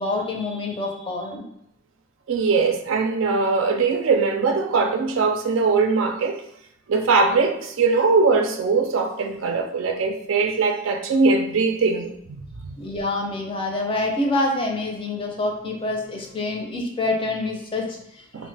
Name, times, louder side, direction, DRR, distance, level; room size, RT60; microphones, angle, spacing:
voice 1, 0.0-1.4 12.8-18.2, left 2 dB, 25° left, 0.5 m, -26 dB
voice 2, 2.3-6.4 6.9-12.8 18.3-18.5, right 4 dB, 80° right, 0.4 m, -21 dB
3.0 x 2.1 x 3.2 m
head